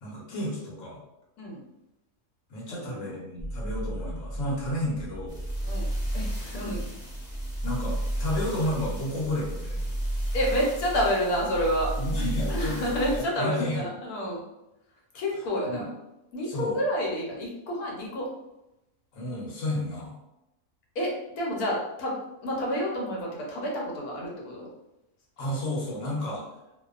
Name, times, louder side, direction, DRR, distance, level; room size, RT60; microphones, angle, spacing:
voice 1, 0.0-1.0 2.5-5.4 7.6-9.9 12.0-13.9 15.6-15.9 16.4-16.8 19.1-20.2 25.4-26.5, left 1 dB, 65° left, -4 dB, 1.1 m, -32 dB
voice 2, 2.8-3.2 5.6-6.8 10.3-11.9 12.5-14.4 15.1-15.9 16.3-18.3 20.9-24.7, equal, 85° left, -2 dB, 1.2 m, -29 dB
sound 1, 3.4-13.2, right 1 dB, 5° right, 0.3 m, -32 dB
2.6 x 2.2 x 2.3 m, 0.91 s
omnidirectional pair, 1.6 m